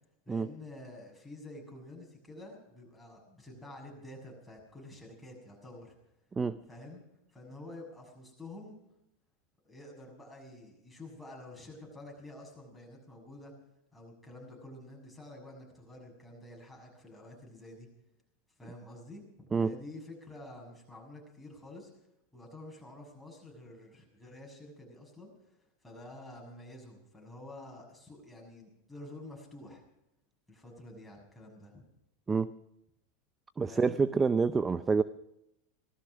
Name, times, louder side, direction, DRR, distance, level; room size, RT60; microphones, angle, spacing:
voice 1, 0.2-6.0 6.7-7.0 7.3-8.8 9.6-13.5 13.9-17.9 18.6-21.9 22.3-29.8 30.5-31.9 33.7-34.0, left 1 dB, 5° left, -1 dB, 6.7 m, -49 dB
voice 2, 33.6-35.0, right 4 dB, 20° right, 14 dB, 0.5 m, -27 dB
18.0 x 13.0 x 6.1 m, 0.84 s
hypercardioid pair, 110°, 0 cm